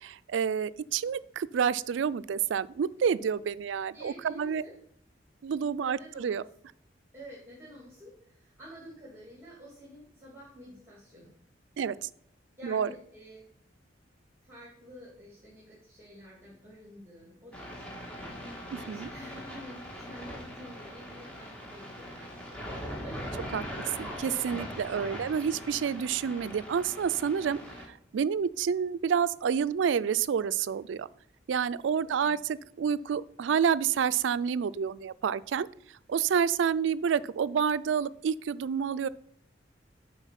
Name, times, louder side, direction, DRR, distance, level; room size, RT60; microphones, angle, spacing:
voice 1, 0.0-4.6 5.4-6.4 11.8-12.1 12.6-12.9 18.7-19.1 23.5-23.6 24.0-27.6 28.1-31.1 31.5-35.7 36.1-39.1, right 7 dB, 85° right, 17 dB, 0.4 m, -29 dB
voice 2, 3.9-4.7 5.8-6.4 7.1-11.3 12.6-13.5 14.4-22.6 23.0-23.5 32.0-32.3, equal, 15° right, -5 dB, 2.2 m, -49 dB
sound 1, 17.5-27.8, equal, 5° left, 1.7 m, -41 dB
8.0 x 4.5 x 5.8 m, 0.69 s
head